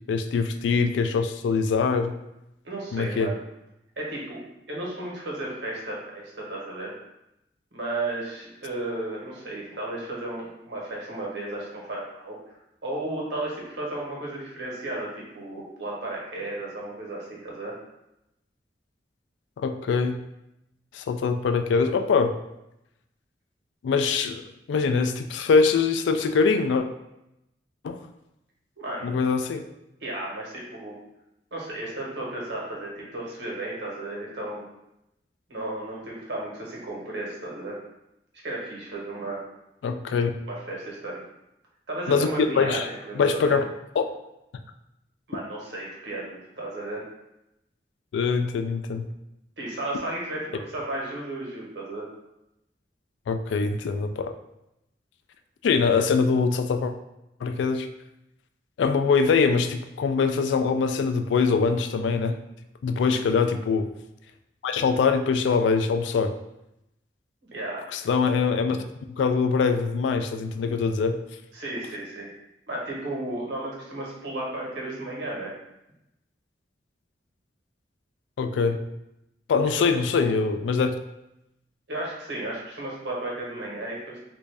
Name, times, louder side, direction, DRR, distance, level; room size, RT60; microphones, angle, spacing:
voice 1, 0.1-2.2 2.9-3.3 19.6-20.2 20.9-22.4 23.8-26.9 27.8-28.0 29.0-29.6 39.8-40.3 42.1-42.3 42.6-42.9 43.2-43.6 44.0-44.1 48.1-49.0 53.3-54.3 55.6-56.9 57.4-57.9 58.8-62.4 62.8-63.9 64.6-66.4 67.9-68.8 69.2-71.2 78.4-78.8 79.5-80.9, left 5 dB, 85° left, 7 dB, 0.3 m, -23 dB
voice 2, 2.6-3.4 4.0-6.9 7.7-12.6 12.8-17.7 28.8-29.1 30.0-31.0 31.5-34.7 35.5-37.8 38.3-39.4 40.5-41.2 41.9-43.6 45.3-47.0 49.6-52.1 63.0-63.4 67.5-67.9 71.5-72.3 72.7-75.5 79.8-79.9 80.1-80.3 81.9-84.2, right 2 dB, 80° right, -4 dB, 1.1 m, -34 dB
3.1 x 2.5 x 3.4 m, 0.86 s
head